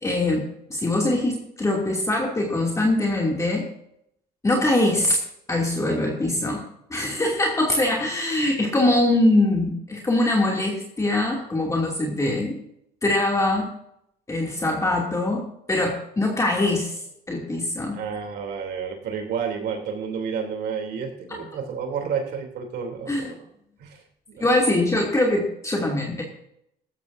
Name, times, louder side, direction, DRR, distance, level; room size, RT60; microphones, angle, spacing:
voice 1, 0.0-3.7 4.4-5.2 5.5-12.6 13.0-13.7 14.3-17.0 17.3-18.0 21.3-21.4 23.1-23.3 24.4-26.2, left 2 dB, 20° left, -2 dB, 2.7 m, -23 dB
voice 2, 17.9-23.5 23.8-24.0 24.3-24.5, right 6 dB, 75° right, 3 dB, 3.2 m, -30 dB
16.5 x 13.5 x 2.7 m, 0.75 s
cardioid pair, 110°, 17 cm